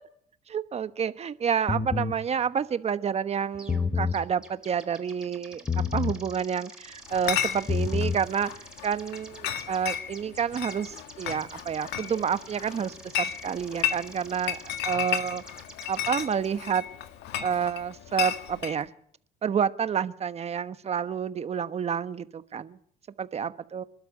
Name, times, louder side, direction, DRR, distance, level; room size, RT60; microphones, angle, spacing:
voice 1, 0.5-15.4 15.9-16.8 17.4-18.9 19.4-22.8 23.2-23.8, right 7 dB, 40° right, 12 dB, 1.2 m, -29 dB
sound 1, 1.7-2.2 3.5-4.2 5.7-6.2 7.5-8.2, left 5 dB, 25° left, 1.6 m, -27 dB
sound 2, 3.6-3.8 4.1-16.5, right 1 dB, 5° right, 4.1 m, -49 dB
Chatter / Chink clink, 7.1-18.8, left 10 dB, 90° left, 1.8 m, -34 dB
26.0 x 12.0 x 8.8 m, 0.66 s
cardioid pair, 110°, 17 cm